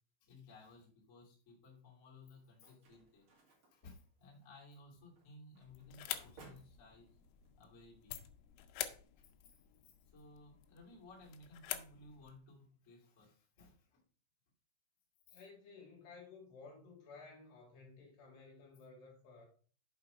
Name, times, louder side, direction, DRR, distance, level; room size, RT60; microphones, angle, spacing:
voice 1, 0.2-3.3 3.7-7.1 7.6-8.3 9.1-14.0 15.3-15.4, left 2 dB, 30° left, 1.5 m, -59 dB
sound 1, 2.2-7.5, right 3 dB, 50° right, 2.4 m, -64 dB
sound 2, 5.7-12.4, left 12 dB, 85° left, 3.2 m, -48 dB
voice 2, 15.3-19.5, left 4 dB, 65° left, 3.5 m, -56 dB
7.4 x 4.8 x 5.0 m
omnidirectional pair, 5.7 m